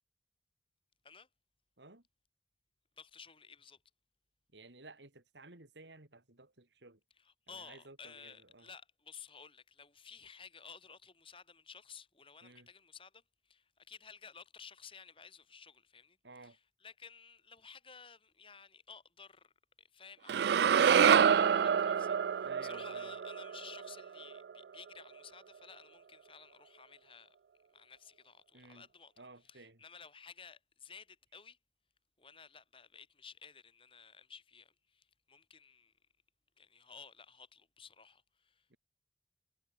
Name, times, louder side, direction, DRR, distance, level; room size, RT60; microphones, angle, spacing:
voice 1, 3.0-3.8 7.2-19.5 19.8-27.3 27.7-29.1 29.4-31.6 32.2-35.9 36.6-38.8, left 6 dB, 30° left, 6.7 m, -55 dB
voice 2, 4.5-7.0 7.5-8.7 12.4-12.7 16.2-16.6 22.4-23.1 28.5-28.9 29.2-29.8 38.7-38.8, right 2 dB, 85° right, 3.2 m, -55 dB
sound 1, 20.3-24.5, right 7 dB, 70° right, 0.3 m, -27 dB
head